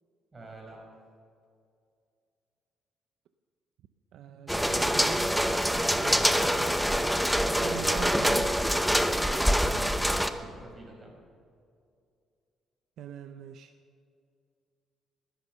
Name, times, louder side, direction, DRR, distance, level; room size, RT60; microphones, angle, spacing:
voice 1, 0.3-0.8 9.7-11.1, right 2 dB, 30° right, 0 dB, 5.4 m, -47 dB
voice 2, 4.1-6.8 7.5-8.5 13.0-13.7, right 9 dB, 75° right, 9 dB, 0.6 m, -41 dB
sound 1, 4.5-10.3, equal, ahead, 0.8 m, -25 dB
20.0 x 10.5 x 6.7 m, 2.4 s
cardioid pair, 90°, 0 cm